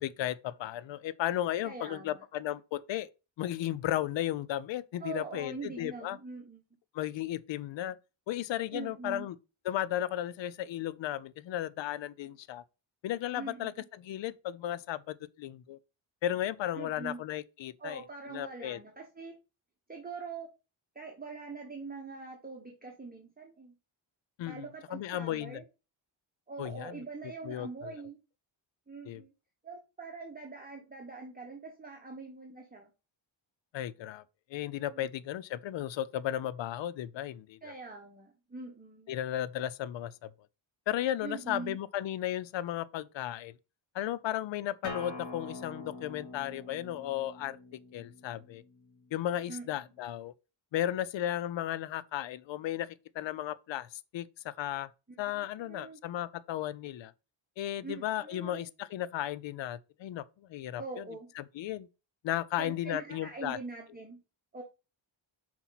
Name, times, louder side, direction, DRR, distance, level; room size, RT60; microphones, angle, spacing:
voice 1, 0.0-3.1 3.4-6.2 6.9-8.0 8.3-9.4 9.6-12.6 13.0-15.8 16.2-18.0 18.3-18.8 24.4-25.6 26.6-27.0 27.4-27.9 29.1-29.2 33.7-34.2 34.5-37.7 39.1-40.3 40.9-43.5 43.9-47.6 47.9-48.6 49.1-50.3 50.7-54.9 55.2-57.1 57.6-61.0 61.4-61.9 62.2-63.6, left 12 dB, 70° left, 0.5 m, -35 dB
voice 2, 1.6-2.2 5.0-6.6 8.7-9.3 13.3-13.7 16.8-17.2 17.8-19.4 19.9-20.5 20.9-23.7 24.4-25.6 26.5-28.2 28.9-29.3 29.6-32.9 34.9-35.1 37.6-39.2 41.2-41.8 49.5-49.7 55.6-56.0 57.8-58.7 60.8-61.3 62.6-64.2 64.5-64.6, right 4 dB, 20° right, 1.1 m, -43 dB
Acoustic guitar, 44.8-50.0, left 2 dB, 40° left, 2.6 m, -46 dB
5.8 x 4.3 x 4.0 m
wide cardioid pair, 115°, 47 cm